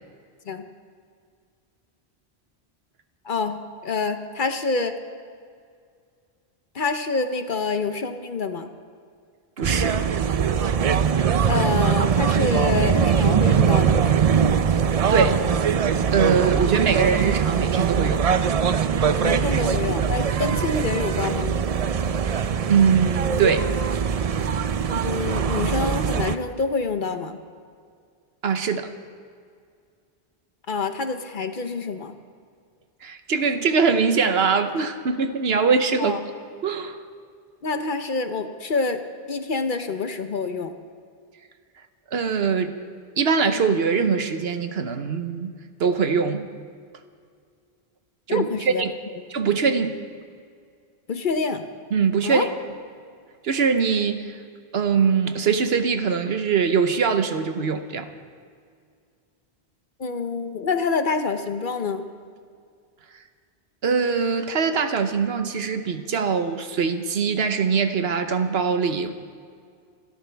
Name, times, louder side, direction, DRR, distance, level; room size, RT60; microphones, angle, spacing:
voice 1, 3.2-5.0 6.7-8.7 11.5-14.2 19.2-21.6 24.9-27.4 30.7-32.1 36.0-36.2 37.6-39.0 39.3-40.7 48.3-48.8 51.1-51.6 52.2-52.5 60.0-62.1, left 4 dB, 50° left, 8 dB, 0.9 m, -27 dB
sound 1, 9.6-26.3, right 7 dB, 50° right, 0.5 m, -22 dB
voice 2, 9.6-10.0 15.1-15.5 16.1-18.2 20.4-20.6 22.7-23.7 28.4-28.9 33.0-36.2 36.6-37.0 42.1-42.8 43.2-45.5 45.8-46.5 48.3-48.9 49.3-50.0 51.9-52.5 53.4-54.4 54.7-58.1 63.8-69.1, right 5 dB, 70° right, 8 dB, 1.1 m, -22 dB
28.0 x 13.0 x 3.4 m, 2.2 s
omnidirectional pair, 1.1 m